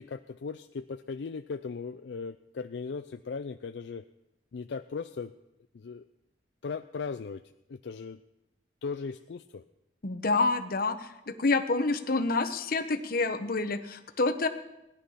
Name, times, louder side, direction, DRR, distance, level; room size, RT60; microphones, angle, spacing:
voice 1, 0.0-4.0 4.5-5.3 5.7-6.0 6.6-7.4 7.7-8.2 8.8-9.6, left 5 dB, 75° left, 9 dB, 0.4 m, -37 dB
voice 2, 10.0-14.5, left 3 dB, 55° left, 8 dB, 1.1 m, -28 dB
17.5 x 10.5 x 5.7 m, 0.90 s
head